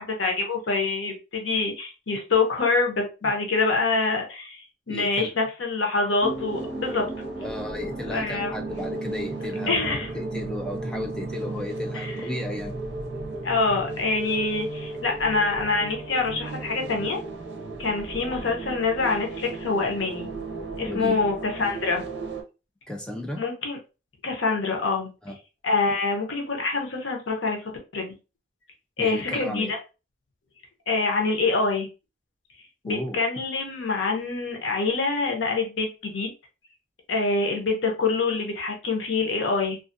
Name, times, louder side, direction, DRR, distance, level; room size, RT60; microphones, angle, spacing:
voice 1, 0.0-7.1 8.1-8.5 9.7-10.1 11.9-12.2 13.4-17.2 17.8-20.3 20.8-22.0 23.4-23.8 24.2-25.1 25.6-28.1 29.0-29.8 30.9-31.9 32.8-36.3 37.1-39.8, left 3 dB, 90° left, 2 dB, 0.8 m, -25 dB
voice 2, 4.9-5.3 7.4-12.8 20.9-21.2 22.9-23.4 25.2-25.4 29.0-29.7 32.8-33.2, left 1 dB, 5° left, 2 dB, 0.4 m, -34 dB
sound 1, 6.2-22.4, right 2 dB, 65° right, 0.6 m, -34 dB
2.5 x 2.4 x 2.5 m, 0.31 s
head